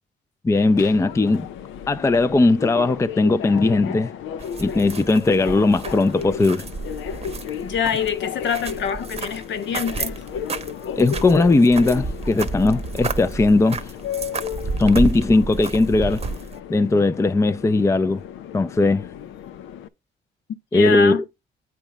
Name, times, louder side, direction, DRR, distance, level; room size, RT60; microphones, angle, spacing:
voice 1, 0.4-1.5 1.9-4.1 4.6-6.6 10.9-13.8 14.8-16.2 16.7-18.2 18.5-19.1 20.7-21.2, left 3 dB, 15° left, 0.5 m, -18 dB
Subway metro underground, 0.5-19.9, left 8 dB, 85° left, 0.7 m, -34 dB
sound 1, 4.4-16.6, right 4 dB, 30° right, 0.9 m, -31 dB
voice 2, 7.6-10.2 20.7-21.2, left 7 dB, 65° left, 1.2 m, -25 dB
8.9 x 3.5 x 5.3 m
cardioid pair, 90°, 20 cm